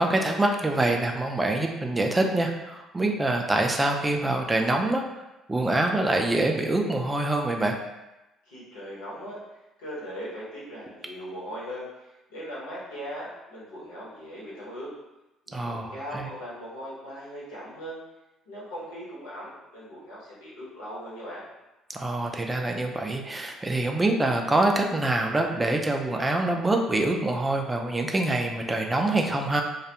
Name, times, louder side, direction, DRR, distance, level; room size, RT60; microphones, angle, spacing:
voice 1, 0.0-5.0 5.5-7.8 15.5-16.3 21.9-29.6, right 2 dB, 20° right, 2 dB, 0.4 m, -25 dB
voice 2, 8.4-9.4 9.8-14.9 15.5-18.0 18.5-21.4, equal, 80° left, -8 dB, 0.9 m, -39 dB
2.3 x 2.1 x 2.8 m, 1.0 s
hypercardioid pair, 55°, 0 cm